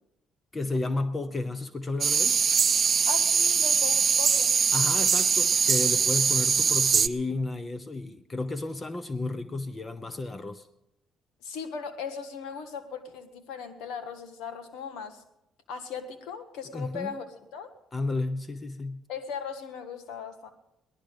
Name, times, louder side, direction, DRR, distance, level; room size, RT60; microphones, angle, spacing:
voice 1, 0.5-2.4 4.7-10.7 16.7-17.1 17.9-19.0, left 2 dB, 30° left, 12 dB, 0.9 m, -32 dB
sound 1, 2.0-7.1, right 6 dB, 45° right, 0.4 m, -22 dB
voice 2, 3.0-4.9 11.4-15.2 15.7-17.2 17.5-17.7 19.1-20.5, left 6 dB, 80° left, 9 dB, 1.5 m, -38 dB
18.0 x 11.5 x 5.2 m, 0.88 s
supercardioid pair, 70°, 0 cm